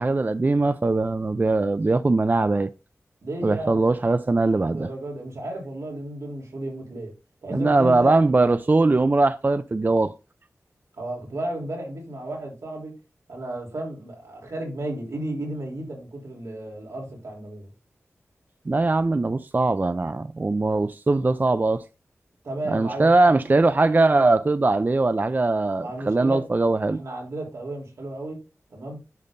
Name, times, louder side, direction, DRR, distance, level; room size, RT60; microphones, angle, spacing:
voice 1, 0.0-2.7 3.4-4.9 7.5-10.1 18.7-21.8 22.7-27.0, right 3 dB, 35° right, 0.4 m, -21 dB
voice 2, 3.2-3.9 4.5-7.1 7.4-8.1 11.0-12.9 13.3-17.7 22.4-23.6 25.8-26.5 27.0-28.4 28.7-29.0, right 1 dB, 85° right, 3.3 m, -33 dB
10.5 x 5.5 x 2.6 m
cardioid pair, 50°, 5 cm